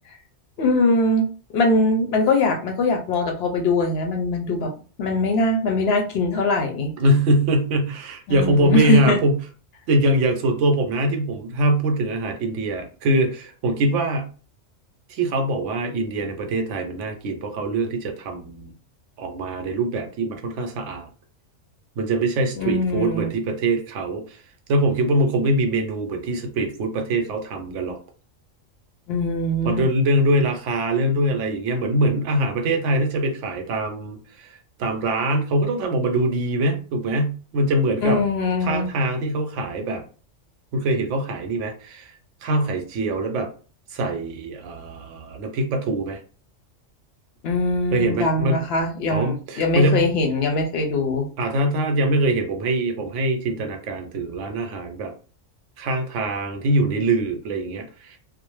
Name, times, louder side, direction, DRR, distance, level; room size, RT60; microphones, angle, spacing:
voice 1, 0.6-1.3 1.5-4.7 5.0-6.9 8.3-9.2 22.6-23.3 29.1-29.8 38.0-38.9 47.4-51.3, left 2 dB, 65° left, 3 dB, 0.7 m, -22 dB
voice 2, 7.0-9.4 9.9-14.3 15.1-18.7 19.2-21.1 22.0-24.4 24.7-28.0 29.6-38.2 38.6-40.0 40.7-42.1 42.4-43.5 43.9-46.2 47.9-48.6 49.1-50.1 51.4-55.1 55.8-58.2, right 1 dB, 75° right, 4 dB, 0.9 m, -23 dB
2.4 x 2.0 x 3.0 m, 0.38 s
omnidirectional pair, 1.3 m